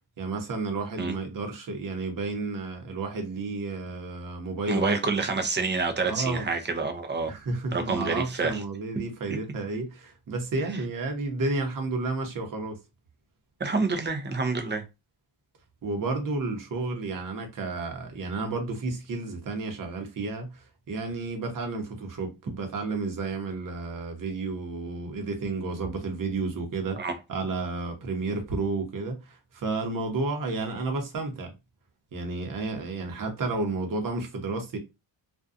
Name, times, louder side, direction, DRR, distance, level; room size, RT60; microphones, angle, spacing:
voice 1, 0.2-5.0 6.0-6.5 7.3-12.8 15.8-31.5 32.1-34.8, right 3 dB, 40° right, 0.8 m, -31 dB
voice 2, 4.7-7.3 7.7-8.6 13.6-14.8 27.0-27.2, right 4 dB, 25° right, 0.4 m, -27 dB
2.5 x 2.2 x 2.4 m
cardioid pair, 125°, 50 cm